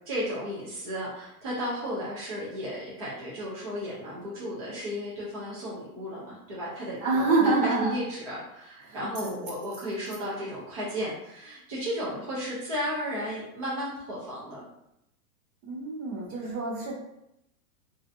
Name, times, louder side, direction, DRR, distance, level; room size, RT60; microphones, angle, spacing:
voice 1, 0.1-14.6, equal, 30° right, -7 dB, 0.3 m, -34 dB
voice 2, 7.0-8.0 8.8-9.4 15.6-17.0, right 3 dB, 55° right, -3 dB, 1.0 m, -27 dB
3.0 x 2.5 x 2.6 m, 0.82 s
supercardioid pair, 165°, 45 cm